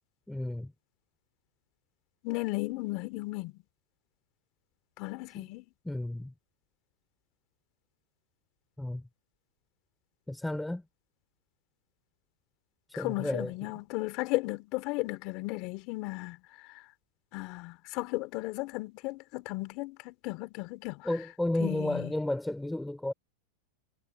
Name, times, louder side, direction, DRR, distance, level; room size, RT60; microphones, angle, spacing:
voice 1, 0.3-0.7 5.3-5.5 5.8-6.3 8.8-9.1 10.3-10.8 13.0-13.8 21.0-23.1, left 1 dB, 5° left, 2.9 m, -33 dB
voice 2, 2.2-3.5 5.0-5.6 13.0-16.4 17.3-21.0 21.6-22.1, left 22 dB, 45° left, 2.9 m, -35 dB
supercardioid pair, 130°, 0 cm